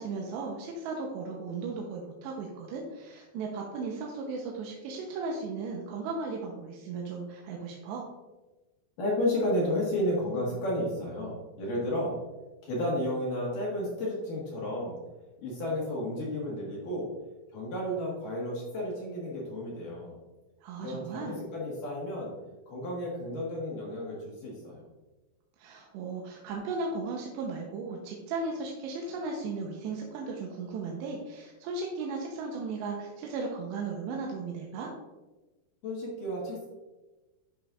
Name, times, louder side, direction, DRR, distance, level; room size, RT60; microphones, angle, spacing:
voice 1, 0.0-8.0 20.6-21.3 25.6-34.9, right 4 dB, 90° right, -1 dB, 3.0 m, -36 dB
voice 2, 9.0-12.2 12.6-15.0 15.4-17.1 17.5-20.2 20.8-22.3 22.7-24.8 35.8-36.7, left 1 dB, 60° left, -4 dB, 2.6 m, -32 dB
11.5 x 5.2 x 2.4 m, 1.1 s
omnidirectional pair, 5.0 m